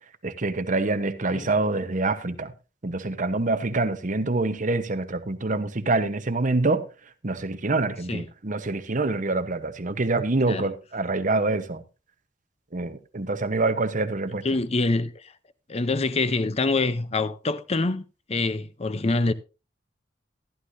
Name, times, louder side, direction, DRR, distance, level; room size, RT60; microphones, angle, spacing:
voice 1, 0.2-2.5 2.8-6.9 7.2-11.8 12.7-14.4, right 2 dB, 45° right, 1.0 m, -26 dB
voice 2, 14.4-15.3 15.7-19.3, left 3 dB, 35° left, 0.6 m, -25 dB
15.0 x 11.0 x 2.7 m
head